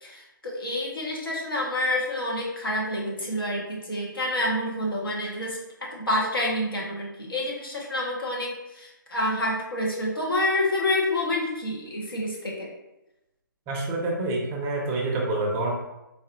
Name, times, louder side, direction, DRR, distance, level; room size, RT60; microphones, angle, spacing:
voice 1, 0.0-5.6 5.9-12.7, left 1 dB, 80° left, -3 dB, 1.2 m, -28 dB
voice 2, 13.7-15.7, right 2 dB, 20° right, -2 dB, 0.5 m, -27 dB
4.0 x 2.6 x 2.4 m, 0.93 s
figure-of-eight pair, 140°, 12 cm